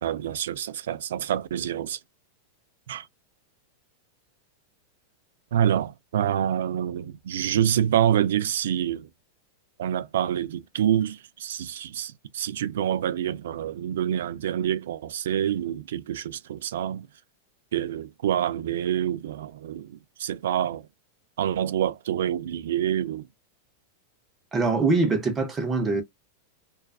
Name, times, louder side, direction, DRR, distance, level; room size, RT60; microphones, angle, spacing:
voice 1, 0.0-2.0 2.9-3.1 5.5-9.1 9.8-17.1 17.7-20.9 21.4-23.3, right 10 dB, 80° right, 0.3 m, -27 dB
voice 2, 24.5-26.0, right 3 dB, 15° right, 0.6 m, -23 dB
2.3 x 2.3 x 2.2 m
supercardioid pair, 175°, 0 cm